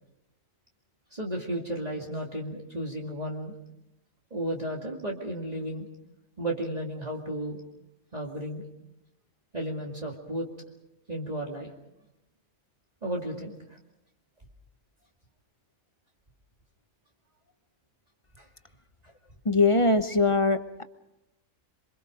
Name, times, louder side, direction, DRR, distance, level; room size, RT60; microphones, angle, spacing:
voice 1, 1.1-3.5 4.3-5.9 6.4-7.6 8.1-8.7 9.5-10.5 11.1-11.7 13.0-13.5 18.3-18.5, right 1 dB, 30° right, -2 dB, 2.5 m, -33 dB
voice 2, 19.4-20.8, left 3 dB, 25° left, 9 dB, 0.9 m, -22 dB
27.5 x 24.5 x 5.1 m, 0.87 s
omnidirectional pair, 1.4 m